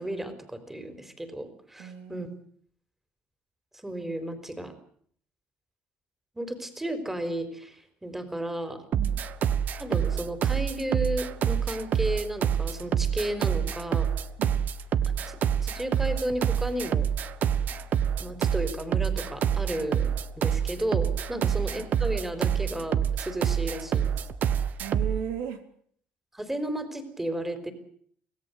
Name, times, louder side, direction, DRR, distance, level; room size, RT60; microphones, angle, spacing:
voice 1, 0.0-2.3 3.7-4.7 6.3-8.8 9.8-14.1 15.1-17.1 18.2-24.1 26.3-27.7, right 1 dB, 10° right, 9 dB, 4.0 m, -33 dB
voice 2, 1.8-2.3 8.9-9.2 14.4-14.7 21.3-21.5 24.8-25.6, right 8 dB, 90° right, 7 dB, 3.4 m, -36 dB
sound 1, 8.9-25.2, right 8 dB, 55° right, 1.3 m, -26 dB
25.5 x 17.0 x 8.2 m, 0.62 s
cardioid pair, 115°, 4 cm